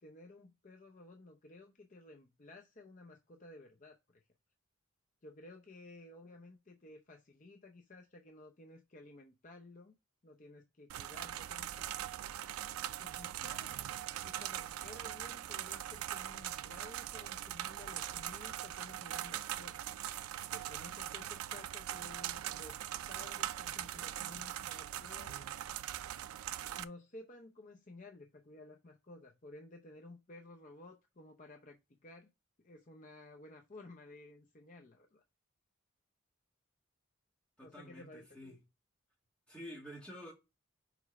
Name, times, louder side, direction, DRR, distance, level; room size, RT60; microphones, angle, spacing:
voice 1, 0.0-4.2 5.2-9.9 10.2-11.9 13.0-19.7 20.5-22.8 23.1-25.5 26.7-32.3 32.6-35.2 37.6-38.6, left 2 dB, 35° left, 0.6 m, -54 dB
sound 1, 10.9-26.8, right 12 dB, 90° right, 0.3 m, -41 dB
voice 2, 37.6-38.6 39.5-40.3, equal, 5° left, 2.0 m, -49 dB
5.1 x 4.5 x 4.7 m
head